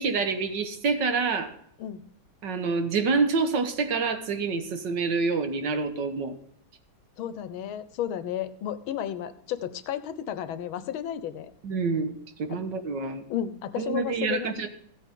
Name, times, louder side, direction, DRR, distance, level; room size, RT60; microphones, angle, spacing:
voice 1, 0.0-1.5 2.4-6.4 11.6-12.1 12.4-13.2 13.8-14.7, right 4 dB, 60° right, 7 dB, 1.7 m, -27 dB
voice 2, 7.2-11.5 12.5-12.6 13.3-14.7, left 10 dB, 85° left, 13 dB, 1.6 m, -33 dB
15.0 x 8.3 x 3.7 m, 0.71 s
omnidirectional pair, 2.2 m